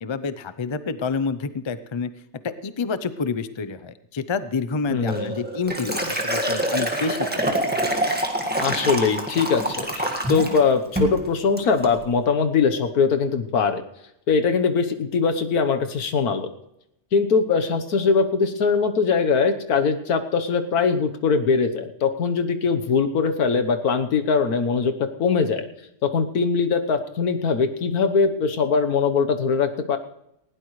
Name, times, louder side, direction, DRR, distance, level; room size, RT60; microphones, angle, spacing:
voice 1, 0.0-2.1 2.4-7.6, left 4 dB, 50° left, 13 dB, 0.3 m, -28 dB
voice 2, 4.9-5.4 8.6-13.8 14.3-16.5 17.1-24.9 25.2-25.7 26.0-30.0, left 5 dB, 75° left, 7 dB, 1.6 m, -21 dB
Liquid, 5.1-10.6 11.0-11.2 11.6-11.9, right 1 dB, 5° right, 1.6 m, -26 dB
19.5 x 16.5 x 3.2 m, 0.82 s
omnidirectional pair, 1.6 m